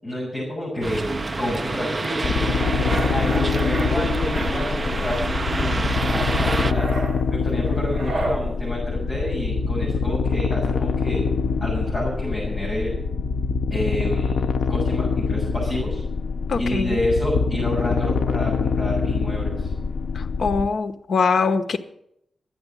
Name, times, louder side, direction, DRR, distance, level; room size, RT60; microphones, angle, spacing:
voice 1, 0.0-1.1 1.4-2.6 3.1-7.0 7.3-11.3 11.6-12.9 13.7-16.0 16.6-19.7, left 1 dB, 20° left, -6 dB, 7.2 m, -29 dB
sound 1, 0.8-6.7, right 3 dB, 25° right, 0.6 m, -27 dB
sound 2, 2.2-20.7, left 5 dB, 80° left, 0.7 m, -24 dB
sound 3, 2.6-3.9 4.3-5.2 5.5-8.4, right 2 dB, 45° right, 2.9 m, -31 dB
voice 2, 16.5-17.0 20.1-21.8, left 4 dB, 60° left, 7 dB, 1.0 m, -23 dB
12.0 x 9.6 x 8.8 m, 0.76 s
wide cardioid pair, 180°, 0 cm